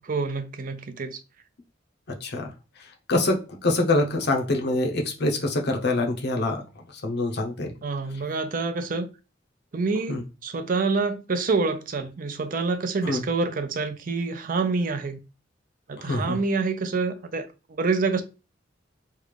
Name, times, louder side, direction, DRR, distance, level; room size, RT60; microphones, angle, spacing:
voice 1, 0.0-1.2 7.8-9.1 9.7-15.2 15.9-18.2, right 4 dB, 45° right, 0.5 m, -27 dB
voice 2, 3.1-6.6 7.0-7.7 10.1-10.2 13.0-13.2 16.0-16.4, left 2 dB, 60° left, 0.8 m, -25 dB
3.2 x 2.4 x 3.3 m
head